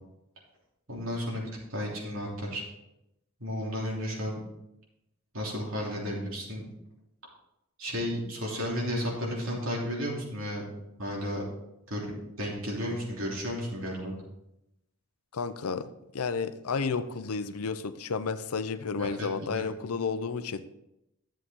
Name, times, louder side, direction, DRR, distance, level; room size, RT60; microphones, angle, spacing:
voice 1, 0.9-2.6 3.4-4.4 5.3-6.6 7.8-10.6 11.0-11.4 11.9-12.0 12.4-14.1 19.0-19.6, equal, 65° right, -3 dB, 3.1 m, -33 dB
voice 2, 15.3-15.9 16.1-20.6, left 5 dB, 85° left, 12 dB, 0.6 m, -32 dB
11.0 x 7.6 x 3.8 m, 0.86 s
head